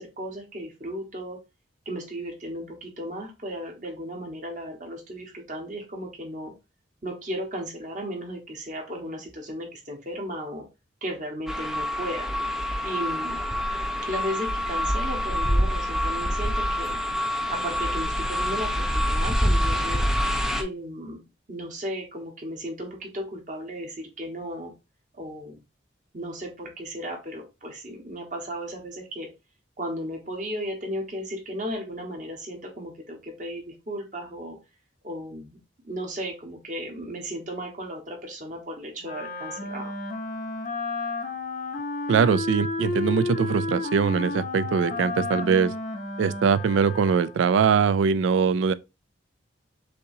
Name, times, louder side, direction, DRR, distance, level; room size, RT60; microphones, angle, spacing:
voice 1, 0.0-1.4 1.8-6.5 7.0-10.6 11.0-12.3 12.8-13.4 14.1-17.0 17.5-20.0 20.6-21.2 21.5-24.7 25.1-25.6 26.1-29.3 29.8-34.6 35.0-35.6 35.8-39.9, equal, 40° right, 1.3 m, -35 dB
sound 1, 11.5-20.6, equal, ahead, 0.4 m, -26 dB
Wind instrument woodwind instrument, 39.0-47.5, left 3 dB, 40° left, 0.7 m, -32 dB
voice 2, 42.1-45.7 46.2-48.7, right 6 dB, 75° right, 0.3 m, -22 dB
6.5 x 2.8 x 2.7 m
head